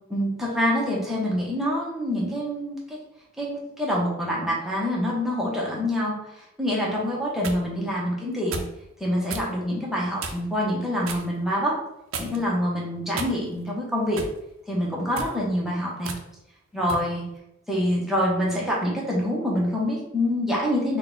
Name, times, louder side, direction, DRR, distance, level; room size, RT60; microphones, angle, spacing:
voice 1, 0.1-3.0 3.4-6.1 6.6-8.6 9.0-11.8 12.2-14.2 14.7-16.1 16.7-17.2 17.7-21.0, equal, ahead, -5 dB, 0.9 m, -26 dB
sound 1, 7.1-7.6 8.5-8.8 9.3-9.5 10.2-10.5 11.0-11.3 12.1-12.5 13.1-13.7 14.2-14.4 15.0-15.4 16.0-16.2 16.9-17.1, right 4 dB, 75° right, 0.5 m, -34 dB
3.8 x 2.3 x 3.9 m, 0.83 s
head